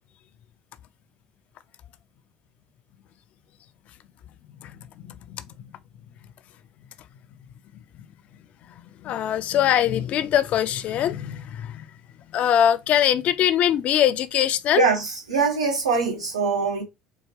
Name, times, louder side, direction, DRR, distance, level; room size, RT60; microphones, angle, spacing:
voice 1, 5.0-5.7 9.0-11.8 12.3-14.8, left 10 dB, 55° left, 0.4 m, -22 dB
voice 2, 14.7-16.8, right 5 dB, 90° right, 1.6 m, -23 dB
4.5 x 2.3 x 3.1 m
hypercardioid pair, 60°, 3 cm